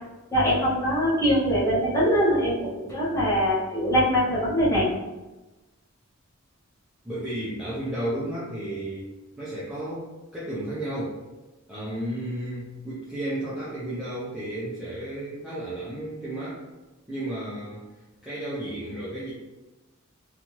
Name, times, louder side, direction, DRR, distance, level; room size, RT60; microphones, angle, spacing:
voice 1, 0.3-4.9, equal, 15° left, -9 dB, 0.9 m, -23 dB
voice 2, 7.0-9.0 9.4-11.2 11.7-16.6 17.1-17.8 18.2-19.3, right 1 dB, 5° right, -10 dB, 0.5 m, -33 dB
2.7 x 2.3 x 3.0 m, 1.1 s
head